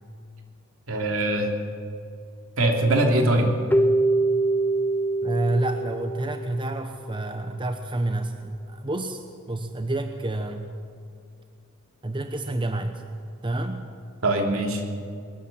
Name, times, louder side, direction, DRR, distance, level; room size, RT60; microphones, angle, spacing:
voice 1, 0.9-1.5 2.6-3.5 14.2-14.8, right 1 dB, 70° right, 2 dB, 3.3 m, -22 dB
Keyboard (musical), 3.7-7.0, right 2 dB, 10° left, 0.6 m, -24 dB
voice 2, 5.2-10.7 12.0-13.0 13.4-13.9, right 2 dB, 25° right, 6 dB, 1.0 m, -29 dB
22.5 x 13.5 x 8.8 m, 2.4 s
head